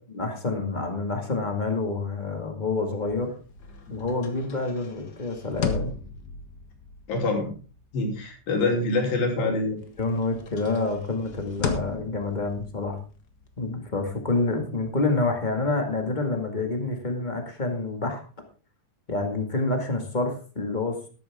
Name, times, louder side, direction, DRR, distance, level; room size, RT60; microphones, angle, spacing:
voice 1, 0.1-3.3 3.9-6.0 10.0-13.0 13.6-18.2 19.1-21.0, left 3 dB, 20° left, 4 dB, 1.3 m, -28 dB
sound 1, 3.0-9.4 9.8-15.2, left 5 dB, 60° left, 1.0 m, -37 dB
voice 2, 7.1-7.5 7.9-9.8, left 3 dB, 85° left, 2 dB, 4.9 m, -25 dB
13.5 x 12.0 x 3.6 m, 0.36 s
omnidirectional pair, 4.0 m